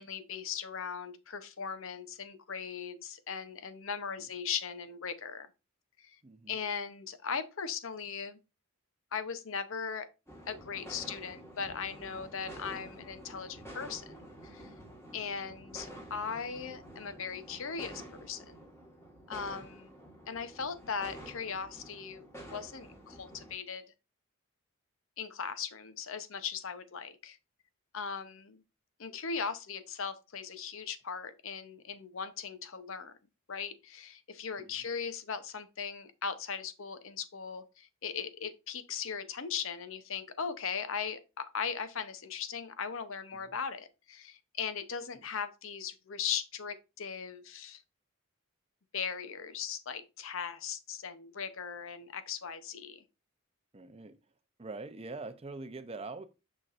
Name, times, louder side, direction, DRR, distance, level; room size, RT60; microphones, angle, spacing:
voice 1, 0.0-5.5 6.0-6.2 6.5-8.4 9.1-10.1 10.5-14.7 15.1-18.6 19.3-19.9 20.3-23.8 25.2-27.4 27.9-28.6 29.0-33.1 33.5-47.8 48.9-53.0, left 6 dB, 70° left, 0.7 m, -38 dB
voice 2, 6.2-6.6 15.1-15.3 34.6-34.8 43.3-43.6 45.1-45.2 53.7-54.2 54.6-56.2, right 3 dB, 25° right, 0.5 m, -44 dB
sound 1, 10.3-23.5, right 1 dB, 10° left, 1.4 m, -49 dB
6.5 x 5.8 x 2.5 m
head